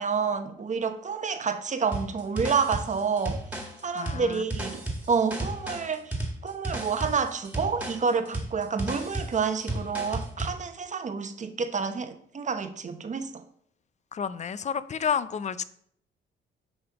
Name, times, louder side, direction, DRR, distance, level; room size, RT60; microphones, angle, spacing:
voice 1, 0.0-3.4 3.8-4.8 5.1-6.1 6.4-13.4, right 5 dB, 40° right, 8 dB, 0.9 m, -29 dB
sound 1, 1.9-10.6, right 1 dB, 5° right, 1.8 m, -34 dB
voice 2, 3.9-4.5 14.1-15.6, left 7 dB, 35° left, 15 dB, 0.5 m, -30 dB
7.8 x 3.4 x 5.9 m, 0.65 s
cardioid pair, 90°, 20 cm